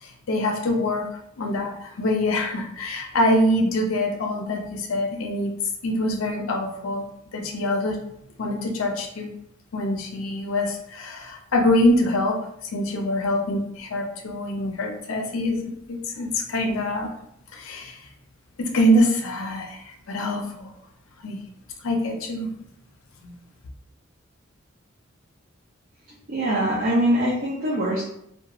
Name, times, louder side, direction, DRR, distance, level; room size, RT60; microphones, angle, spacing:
voice 1, 0.0-1.1 1.4-5.5 5.8-7.0 7.3-8.0 8.4-9.3 9.7-17.1 17.5-18.1 18.6-20.7 21.2-21.4 21.8-22.5 23.2-23.3, left 1 dB, 85° left, 2 dB, 0.5 m, -24 dB
voice 2, 26.3-28.0, right 1 dB, 45° right, -5 dB, 0.4 m, -22 dB
2.9 x 2.1 x 2.3 m, 0.75 s
head